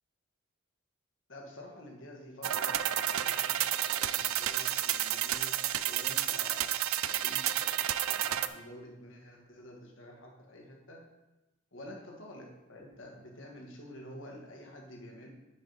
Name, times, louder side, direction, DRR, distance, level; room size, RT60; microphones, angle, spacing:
voice 1, 1.3-6.8 7.1-11.0 11.7-15.3, left 1 dB, 60° left, 0 dB, 1.6 m, -49 dB
sound 1, 2.4-8.5, right 12 dB, 85° right, 0.4 m, -31 dB
10.0 x 4.8 x 4.0 m, 1.0 s
head